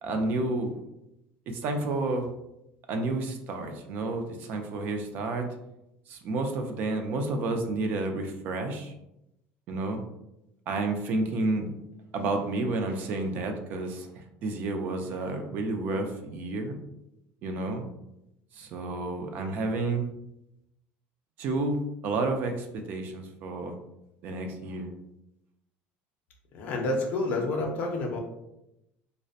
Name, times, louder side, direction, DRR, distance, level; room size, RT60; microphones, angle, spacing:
voice 1, 0.0-0.7 1.5-2.3 2.9-5.5 6.1-8.9 9.7-10.0 10.7-11.7 12.1-16.8 17.4-17.8 18.5-20.1 21.4-23.8 24.2-24.9, right 2 dB, 40° right, 5 dB, 0.3 m, -30 dB
voice 2, 26.5-28.2, left 2 dB, 40° left, 1 dB, 0.5 m, -29 dB
2.6 x 2.0 x 2.4 m, 0.86 s
cardioid pair, 170°, 5 cm